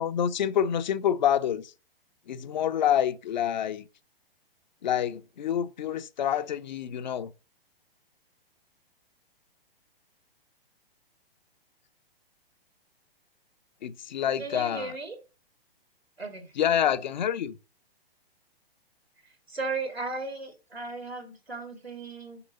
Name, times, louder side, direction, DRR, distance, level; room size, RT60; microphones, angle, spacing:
voice 1, 0.0-1.7 2.3-3.9 4.8-7.3 13.8-15.0 16.5-17.6, left 9 dB, 50° left, 0.7 m, -27 dB
voice 2, 14.4-15.2 16.2-16.5 19.5-22.4, right 3 dB, 85° right, 2.6 m, -36 dB
7.0 x 5.3 x 6.6 m
figure-of-eight pair, 115°, 30 cm